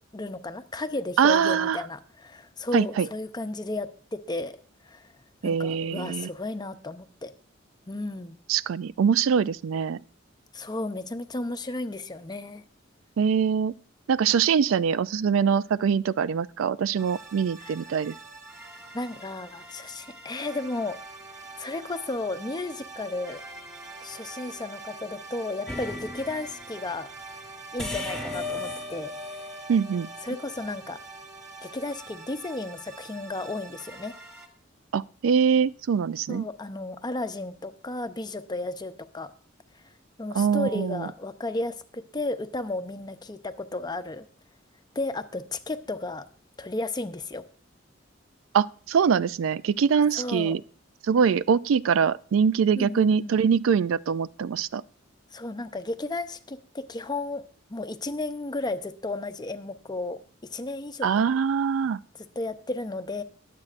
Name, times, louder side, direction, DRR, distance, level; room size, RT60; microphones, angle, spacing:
voice 1, 0.1-4.6 4.8-5.1 5.4-7.3 7.9-8.4 10.5-12.6 17.6-17.7 18.9-21.0 21.3-23.4 24.0-27.4 27.7-29.5 30.2-31.0 31.6-34.1 36.3-39.3 40.2-44.3 44.9-46.3 46.6-47.4 50.1-50.6 52.7-53.4 55.3-57.4 57.7-60.2 60.5-61.4 62.2-63.2, left 2 dB, 20° left, 0.6 m, -33 dB
voice 2, 1.2-1.8 2.7-3.1 5.4-6.3 8.5-10.0 13.2-13.7 14.1-18.1 29.7-30.1 34.9-36.4 40.3-41.1 48.5-50.6 51.1-54.8 61.0-62.0, right 7 dB, 90° right, 0.4 m, -23 dB
sound 1, 17.0-34.5, right 3 dB, 15° right, 2.2 m, -45 dB
sound 2, 25.7-26.6 27.8-30.6, left 2 dB, 5° left, 1.1 m, -36 dB
21.5 x 7.5 x 2.5 m
head